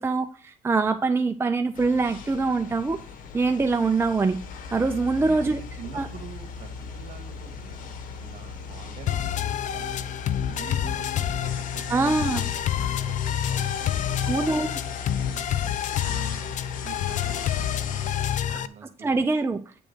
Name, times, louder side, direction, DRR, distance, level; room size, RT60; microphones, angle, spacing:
voice 1, 0.0-3.0 3.3-4.4 4.7-5.6 5.9-6.1 11.9-12.4 14.3-14.7 18.5-18.6 19.0-19.6, right 3 dB, 20° right, 7 dB, 0.5 m, -24 dB
sound 1, 1.7-18.4, left 5 dB, 80° left, 1.1 m, -38 dB
voice 2, 5.2-10.1 10.5-15.6 16.0-19.2, right 6 dB, 60° right, 7 dB, 1.9 m, -46 dB
sound 2, 9.1-18.7, left 10 dB, 65° left, 0.5 m, -28 dB
8.9 x 3.8 x 6.7 m, 0.42 s
cardioid pair, 105°, 14 cm